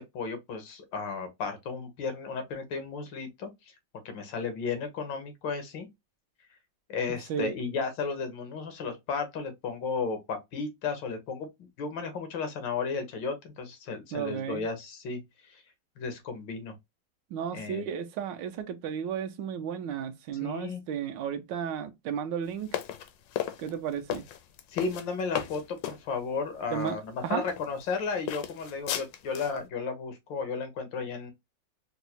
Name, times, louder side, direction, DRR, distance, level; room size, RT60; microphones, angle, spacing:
voice 1, 0.0-3.5 4.0-5.9 6.9-11.5 11.8-15.2 15.5-15.6 16.0-16.7 17.5-17.8 20.4-20.8 24.7-31.3, left 5 dB, 90° left, 1.7 m, -34 dB
voice 2, 14.1-14.6 17.3-22.8 23.6-24.2 26.7-27.4, right 8 dB, 85° right, 1.3 m, -33 dB
sound 1, 22.7-26.0 26.8-26.9 27.5-27.9 28.3-29.6, left 11 dB, 70° left, 1.0 m, -35 dB
4.5 x 2.1 x 2.8 m
omnidirectional pair, 2.0 m